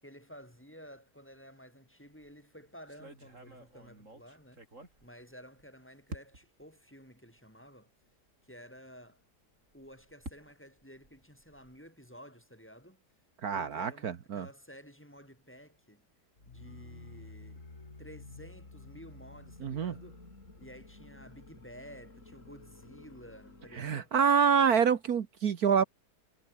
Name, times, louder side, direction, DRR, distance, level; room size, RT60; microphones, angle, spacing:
voice 1, 0.0-4.7 5.0-7.9 8.4-9.2 9.7-13.0 13.5-16.1 16.5-17.7 18.0-20.2 20.6-24.2, equal, 5° left, 5.5 m, -52 dB
sound 1, 2.1-2.3 2.9-5.6 6.1-6.6 7.4-7.5 7.8-7.9 9.5-11.9, right 2 dB, 50° right, 6.6 m, -50 dB
voice 2, 13.4-14.5 19.6-19.9 23.8-25.8, right 7 dB, 65° right, 1.7 m, -26 dB
sound 2, 16.4-24.1, left 2 dB, 50° left, 4.7 m, -51 dB
omnidirectional pair, 1.7 m